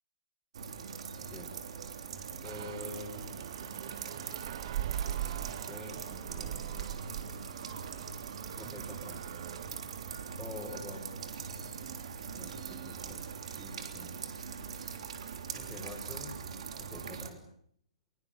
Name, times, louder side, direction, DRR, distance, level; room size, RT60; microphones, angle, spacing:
sound 1, 0.5-17.3, right 6 dB, 55° right, 3.3 m, -42 dB
voice 1, 2.4-3.4 5.5-7.1 8.5-9.2 10.4-11.1 12.3-14.2 15.5-16.4 16.8-17.4, left 1 dB, 5° left, -5 dB, 4.9 m, -46 dB
sound 2, 2.4-13.4, right 11 dB, 40° right, 0.9 m, -42 dB
sound 3, 5.1-13.2, right 2 dB, 80° right, 4.9 m, -52 dB
23.5 x 22.5 x 7.4 m, 0.64 s
hypercardioid pair, 160°, 4 cm